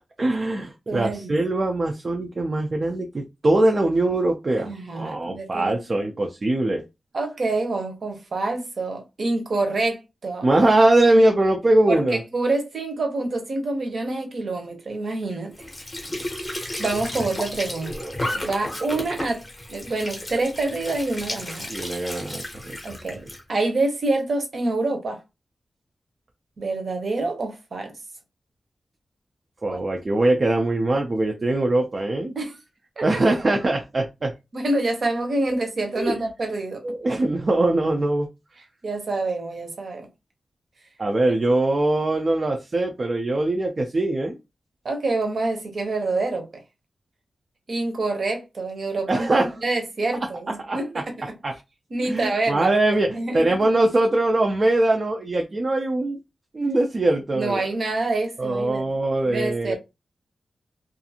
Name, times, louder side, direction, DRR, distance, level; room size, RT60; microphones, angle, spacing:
voice 1, 0.2-6.8 10.4-12.2 17.9-18.5 21.7-22.8 29.6-32.4 33.0-34.3 36.0-36.2 36.8-38.3 41.0-44.4 49.1-49.5 50.7-51.0 51.4-51.5 52.0-56.2 56.5-57.6 58.4-59.8, right 2 dB, 35° right, 0.3 m, -22 dB
voice 2, 0.9-1.4 4.6-5.7 7.1-10.5 11.9-15.5 16.8-18.0 18.3-19.4 19.7-21.7 22.8-23.2 23.5-25.2 26.6-27.9 29.7-29.8 32.3-32.6 33.0-33.2 34.5-36.8 38.8-40.1 44.8-46.6 47.7-49.3 49.6-51.1 51.9-52.7 53.1-53.5 57.3-58.9 59.2-59.8, right 2 dB, 50° right, 0.7 m, -26 dB
Squeak / Sink (filling or washing) / Trickle dribble, 15.5-23.4, left 1 dB, 20° left, 0.6 m, -33 dB
2.5 x 2.4 x 2.7 m
wide cardioid pair, 170°, 0 cm